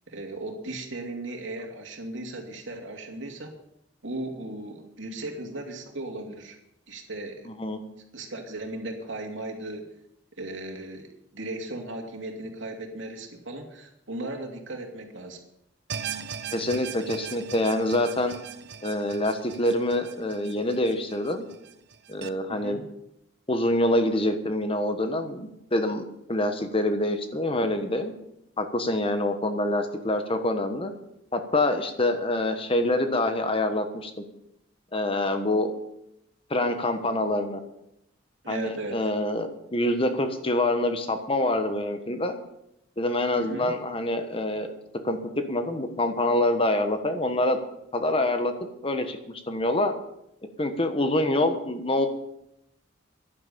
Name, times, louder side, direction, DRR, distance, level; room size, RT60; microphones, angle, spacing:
voice 1, 0.1-3.6 4.0-6.6 6.9-7.5 8.1-9.9 10.4-15.4 22.5-22.8 38.4-39.1 43.4-43.7, right 2 dB, 75° right, 3 dB, 2.7 m, -37 dB
voice 2, 7.4-7.8 16.5-18.3 18.8-21.5 22.1-22.8 23.5-26.0 26.3-28.1 28.6-30.9 31.3-34.1 34.9-35.7 36.5-37.6 38.5-42.4 43.0-44.7 45.0-45.2 45.5-47.6 47.9-48.5 48.8-49.9 50.6-52.1, left 1 dB, 30° left, 7 dB, 1.3 m, -26 dB
sound 1, 15.9-22.3, right 7 dB, 60° right, 0.8 m, -39 dB
11.0 x 11.0 x 7.0 m, 0.80 s
head